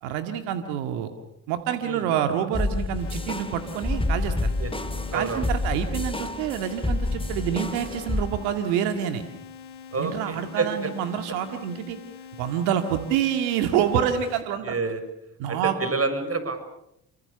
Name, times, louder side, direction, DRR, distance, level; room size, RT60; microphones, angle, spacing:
voice 1, 0.0-1.1 1.5-4.5 5.1-9.2 10.0-12.0 12.4-14.7 15.4-15.8, right 9 dB, 85° right, 7 dB, 2.1 m, -27 dB
sound 1, 2.5-8.3, left 2 dB, 15° left, 2.6 m, -28 dB
sound 2, 3.0-14.4, left 7 dB, 75° left, 4.0 m, -44 dB
voice 2, 5.1-5.5 9.9-10.7 14.6-15.0 15.5-16.6, right 4 dB, 35° right, 9 dB, 6.7 m, -28 dB
29.5 x 25.0 x 6.8 m, 0.81 s
hypercardioid pair, 50°, 40 cm